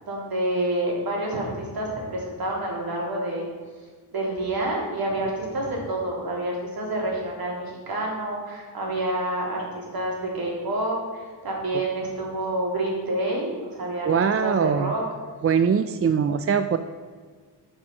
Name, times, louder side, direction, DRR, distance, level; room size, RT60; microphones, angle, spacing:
voice 1, 0.0-3.5 4.1-15.0, right 1 dB, 60° right, -3 dB, 3.7 m, -28 dB
voice 2, 14.0-14.9 15.4-16.8, right 6 dB, 35° right, 9 dB, 0.4 m, -22 dB
12.5 x 6.3 x 6.0 m, 1.5 s
wide cardioid pair, 120°, 41 cm